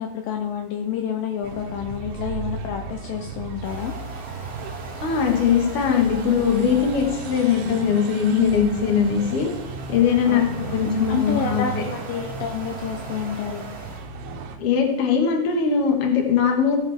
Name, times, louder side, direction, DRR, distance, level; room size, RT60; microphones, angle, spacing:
voice 1, 0.0-3.9 10.3-13.7, left 8 dB, 85° left, 3 dB, 2.0 m, -29 dB
sound 1, 1.4-14.6, right 4 dB, 85° right, 3.2 m, -35 dB
sound 2, 3.6-14.1, right 2 dB, 45° right, 0.8 m, -41 dB
voice 2, 5.0-9.5 9.9-11.6 14.6-16.8, left 7 dB, 55° left, 1 dB, 1.7 m, -20 dB
17.5 x 6.5 x 3.5 m, 0.88 s
omnidirectional pair, 5.0 m